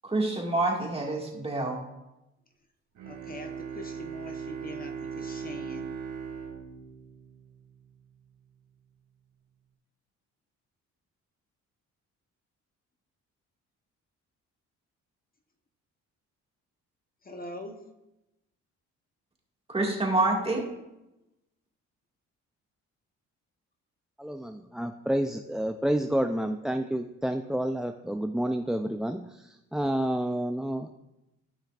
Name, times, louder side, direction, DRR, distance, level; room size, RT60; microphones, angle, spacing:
voice 1, 0.0-1.8 19.7-20.6, right 2 dB, 20° right, 0 dB, 1.9 m, -27 dB
Bowed string instrument, 3.0-7.9, right 6 dB, 75° right, 1.9 m, -39 dB
voice 2, 3.1-5.9 17.2-17.8, left 2 dB, 30° left, 4 dB, 0.9 m, -43 dB
voice 3, 24.2-30.9, right 1 dB, ahead, 5 dB, 0.3 m, -29 dB
13.5 x 5.6 x 2.4 m, 0.93 s
cardioid pair, 90°, 30 cm